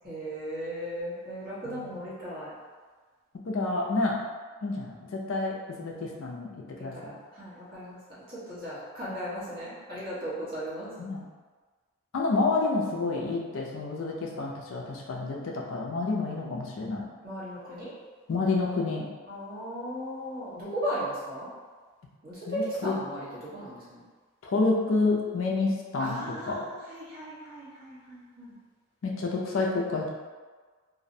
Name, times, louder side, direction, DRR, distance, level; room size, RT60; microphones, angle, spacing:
voice 1, 0.0-2.5 6.9-8.0 8.3-10.9 17.2-17.9 19.3-21.5 22.2-24.0 26.0-28.5, equal, 40° right, -11 dB, 1.0 m, -36 dB
voice 2, 1.7-2.0 3.5-4.2 4.6-6.5 6.8-7.2 9.1-9.2 11.0-11.3 12.1-17.1 18.3-19.1 22.5-23.0 24.4-26.2 26.5-26.7 29.0-30.1, left 3 dB, 60° left, -2 dB, 0.3 m, -29 dB
2.4 x 2.0 x 2.6 m, 1.4 s
head